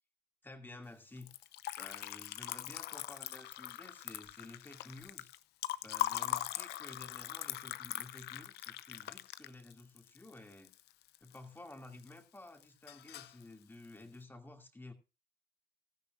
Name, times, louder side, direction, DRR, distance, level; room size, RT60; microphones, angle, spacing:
voice 1, 0.4-1.3 1.8-5.3 5.8-10.7 11.2-14.9, left 2 dB, 10° left, 2.5 m, -52 dB
Liquid, 1.2-11.4 11.7-12.4 12.6-13.4, left 15 dB, 75° left, 0.7 m, -41 dB
15.5 x 14.0 x 2.5 m
cardioid pair, 110°, 17 cm